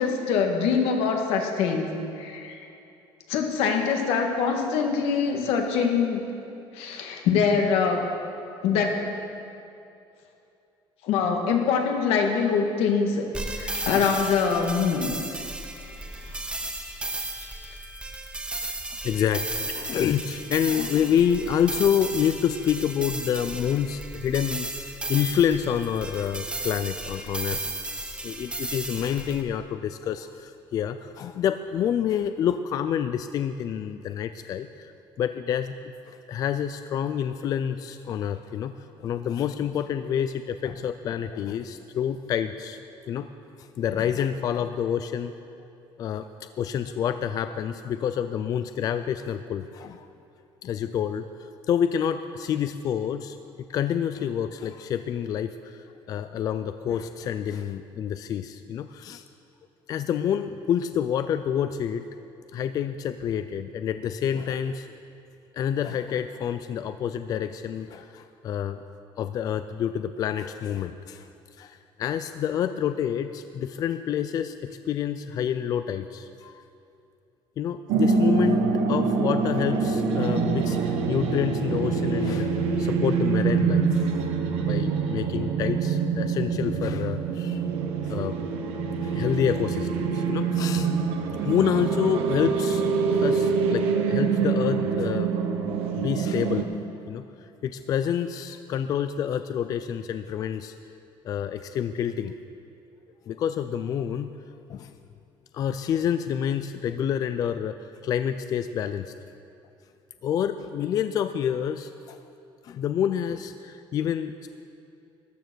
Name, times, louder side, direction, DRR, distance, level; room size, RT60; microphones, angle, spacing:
voice 1, 0.0-1.9 2.2-2.6 3.3-6.2 6.7-8.1 8.6-9.1 11.0-13.3 13.5-15.2 16.5-17.5, left 6 dB, 85° left, 2 dB, 1.8 m, -24 dB
sound 1, 13.3-29.4, right 2 dB, 10° right, 0.8 m, -34 dB
voice 2, 18.5-27.6 28.2-34.9 35.2-35.7 36.1-38.7 39.0-42.8 43.1-43.3 43.6-45.3 46.0-46.3 46.6-50.1 50.6-55.8 56.1-59.2 59.9-62.1 62.5-64.9 65.5-68.8 69.2-71.3 71.6-76.6 77.6-84.1 84.6-87.6 88.0-88.4 89.0-90.9 91.4-92.8 93.1-95.3 96.0-96.7 97.1-97.2 97.6-100.7 101.2-102.3 103.3-104.3 104.7-104.9 105.5-109.1 110.2-112.2 112.6-114.5, left 9 dB, 40° left, 10 dB, 0.4 m, -28 dB
sound 2, 77.9-96.6, right 5 dB, 85° right, 1.2 m, -25 dB
13.5 x 11.5 x 6.2 m, 2.7 s
cardioid pair, 165°, 10 cm